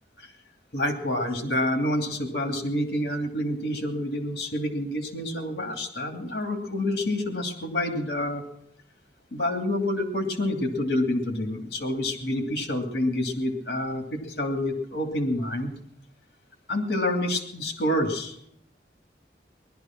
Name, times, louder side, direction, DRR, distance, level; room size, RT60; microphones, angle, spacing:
voice 1, 0.7-8.4 9.3-15.8 16.7-18.3, left 1 dB, 60° left, 5 dB, 2.7 m, -28 dB
19.0 x 11.5 x 6.0 m, 0.72 s
head